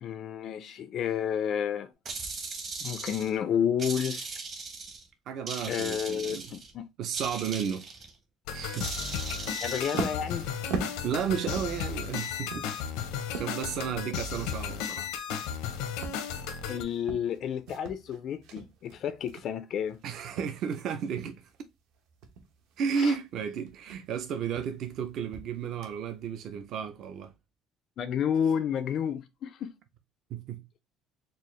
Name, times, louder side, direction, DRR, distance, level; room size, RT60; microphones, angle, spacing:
voice 1, 0.0-1.9 2.8-4.3 5.7-6.9 9.6-10.5 16.7-20.0 23.0-23.2 28.0-29.7, left 8 dB, 40° left, 0.3 m, -30 dB
sound 1, 2.1-3.4 3.8-5.0 5.5-6.7 7.1-8.1 8.7-10.1, right 4 dB, 30° right, 0.8 m, -38 dB
voice 2, 5.3-6.5 7.0-7.8 8.5-8.9 10.3-10.4 11.0-12.7 13.3-15.1 20.0-21.4 22.8-27.3 30.3-30.6, right 7 dB, 45° right, 0.4 m, -33 dB
sound 2, 8.5-16.8, left 7 dB, 85° left, 0.7 m, -34 dB
sound 3, 9.7-20.8 21.2-21.6 22.0-26.3, right 5 dB, 65° right, 0.8 m, -41 dB
4.5 x 2.4 x 3.0 m
cardioid pair, 175°, 0 cm